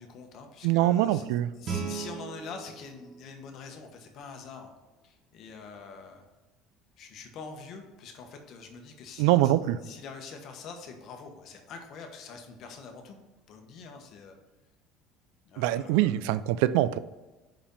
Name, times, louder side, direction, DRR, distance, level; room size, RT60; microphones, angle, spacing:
voice 1, 0.0-1.2 1.6-4.7 5.0-6.3 7.0-9.5 9.8-13.2 13.5-14.3 15.4-16.2, left 5 dB, 50° left, 4 dB, 1.1 m, -45 dB
voice 2, 0.6-1.5 9.2-9.8 15.6-17.0, right 14 dB, 80° right, 15 dB, 0.3 m, -24 dB
Guitar, 1.6-4.4, right 6 dB, 45° right, 1.3 m, -39 dB
5.2 x 5.0 x 5.3 m, 1.1 s
cardioid pair, 130°, 0 cm